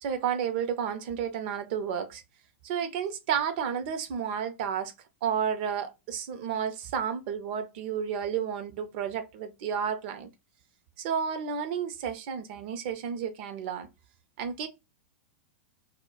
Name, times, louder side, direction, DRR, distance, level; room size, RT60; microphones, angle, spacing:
voice 1, 0.0-2.2 2.6-4.9 5.2-10.3 11.0-13.9 14.4-14.7, right 7 dB, 50° right, 0.6 m, -31 dB
2.2 x 2.1 x 3.6 m
figure-of-eight pair, 95°, 7 cm